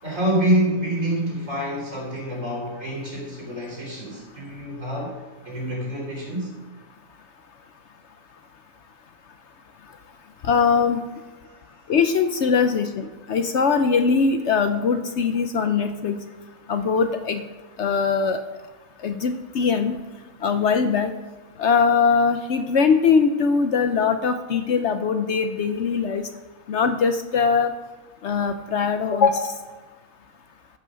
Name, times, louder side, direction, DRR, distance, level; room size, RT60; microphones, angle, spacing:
voice 1, 0.0-5.2 5.4-6.5 11.4-11.9, right 1 dB, 60° right, -2 dB, 3.8 m, -26 dB
voice 2, 10.4-11.0 11.9-16.2 16.7-17.4 17.8-18.4 19.0-20.0 20.4-21.1 21.6-26.3 26.7-27.7 28.2-29.6, left 5 dB, 60° left, 8 dB, 0.9 m, -21 dB
14.0 x 5.4 x 6.3 m, 1.3 s
omnidirectional pair, 1.5 m